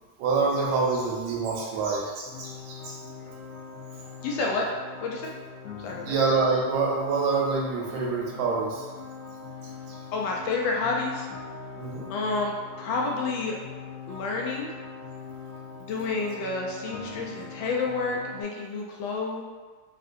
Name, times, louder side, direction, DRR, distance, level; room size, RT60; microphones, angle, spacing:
voice 1, 0.2-3.0 6.0-8.9 9.9-10.0 11.8-12.1, right 4 dB, 75° right, -2 dB, 1.3 m, -26 dB
sound 1, 2.2-18.4, left 5 dB, 65° left, 0.7 m, -42 dB
voice 2, 4.2-4.7 5.0-5.3 5.8-6.2 10.1-11.3 12.1-13.6 14.1-14.7 15.8-19.4, left 3 dB, 85° left, -1 dB, 1.4 m, -29 dB
3.6 x 2.4 x 2.5 m, 1.4 s
omnidirectional pair, 2.0 m